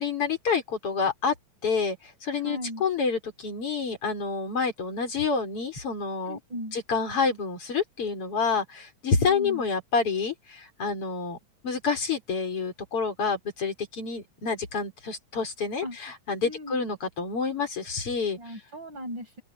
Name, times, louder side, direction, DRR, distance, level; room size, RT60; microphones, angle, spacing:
voice 1, 0.0-1.3 1.6-2.0 2.2-6.4 6.7-11.4 11.6-18.4, left 5 dB, 45° left, 5.7 m, -28 dB
voice 2, 2.3-2.8 6.3-6.8 9.2-9.6 15.8-16.0 16.4-16.8 18.4-19.4, equal, 35° right, 6.8 m, -37 dB
open air
omnidirectional pair, 3.4 m